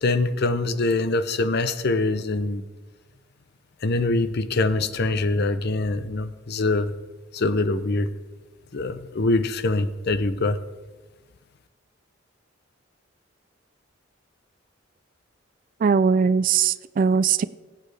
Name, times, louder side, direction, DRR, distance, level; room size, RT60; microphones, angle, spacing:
voice 1, 0.0-2.6 3.8-6.9 7.3-8.1 8.7-10.6, left 2 dB, 55° left, 12 dB, 0.6 m, -24 dB
voice 2, 15.8-17.4, right 6 dB, 45° right, 16 dB, 0.3 m, -20 dB
19.5 x 8.5 x 3.4 m, 1.2 s
head